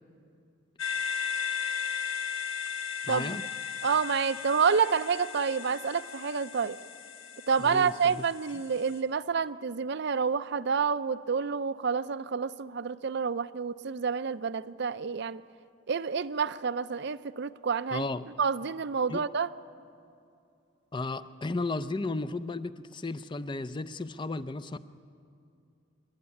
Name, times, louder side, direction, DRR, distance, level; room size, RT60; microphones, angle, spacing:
sound 1, 0.8-9.0, left 7 dB, 75° left, 1.7 m, -36 dB
voice 1, 3.0-3.4 7.6-8.2 17.9-18.3 19.1-19.2 20.9-24.8, left 3 dB, 25° left, 14 dB, 0.5 m, -34 dB
voice 2, 3.8-6.8 7.5-15.4 15.9-18.0 18.4-19.5, right 6 dB, 55° right, 15 dB, 0.5 m, -28 dB
26.5 x 12.0 x 9.7 m, 2.5 s
head